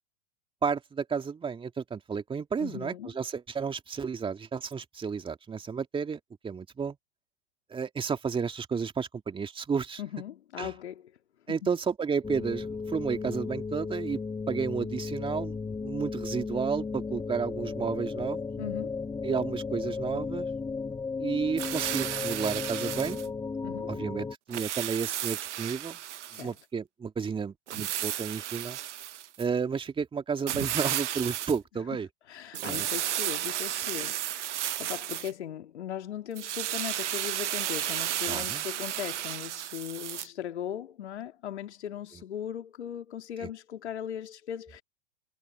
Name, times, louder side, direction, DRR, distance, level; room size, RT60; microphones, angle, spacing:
voice 1, 0.6-7.0 7.7-10.0 10.6-10.7 11.5-14.2 14.5-18.4 19.2-20.5 21.2-23.3 23.9-26.0 26.3-28.8 29.4-32.1 32.6-32.9 38.3-38.6, right 6 dB, 15° right, 2.4 m, -32 dB
voice 2, 2.6-3.1 10.0-11.1 11.5-11.7 18.6-19.0 23.6-23.9 26.3-26.6 32.3-44.8, left 10 dB, 70° left, 2.8 m, -38 dB
sound 1, 12.2-24.4, left 4 dB, 10° left, 1.5 m, -35 dB
sound 2, 21.6-23.3 24.5-26.5 27.7-29.4 30.5-31.6 32.5-35.3 36.4-40.3, right 12 dB, 80° right, 0.5 m, -33 dB
hypercardioid pair, 105°, 35 cm